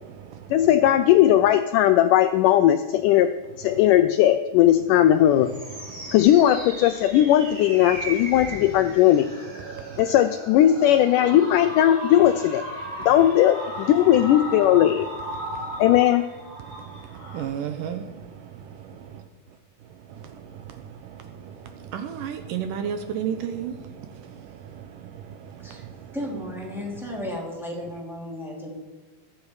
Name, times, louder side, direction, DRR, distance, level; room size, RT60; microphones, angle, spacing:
voice 1, 0.5-5.5 6.1-9.3 10.0-12.6 13.1-15.1 15.8-16.3, left 12 dB, 80° left, 1.9 m, -18 dB
sound 1, 5.1-17.4, equal, 35° right, 6.4 m, -36 dB
voice 2, 17.3-18.0 21.9-23.7, right 8 dB, 75° right, 2.3 m, -30 dB
voice 3, 26.1-28.7, left 1 dB, ahead, 3.2 m, -34 dB
21.0 x 8.6 x 4.9 m
omnidirectional pair, 4.1 m